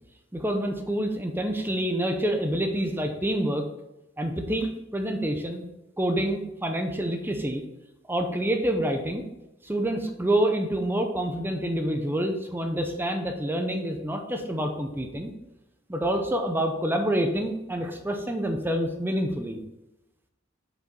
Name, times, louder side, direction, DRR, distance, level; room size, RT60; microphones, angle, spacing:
voice 1, 0.3-3.7 4.2-5.7 6.0-7.6 8.1-9.2 9.6-15.3 15.9-19.6, right 1 dB, 10° right, 4 dB, 0.7 m, -27 dB
6.6 x 5.1 x 5.3 m, 0.94 s
head